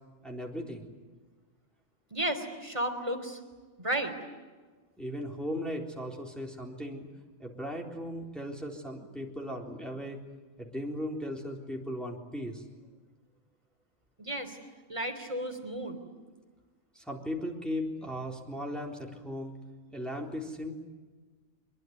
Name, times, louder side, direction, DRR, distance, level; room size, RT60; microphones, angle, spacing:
voice 1, 0.2-0.9 5.0-7.1 7.4-10.2 10.6-12.6 16.9-19.5 19.9-20.7, equal, ahead, -1 dB, 3.8 m, -37 dB
voice 2, 2.1-3.4 3.8-4.1 14.2-14.6 14.9-16.0, right 1 dB, 25° right, 7 dB, 3.6 m, -33 dB
25.0 x 22.5 x 9.5 m, 1.4 s
omnidirectional pair, 1.3 m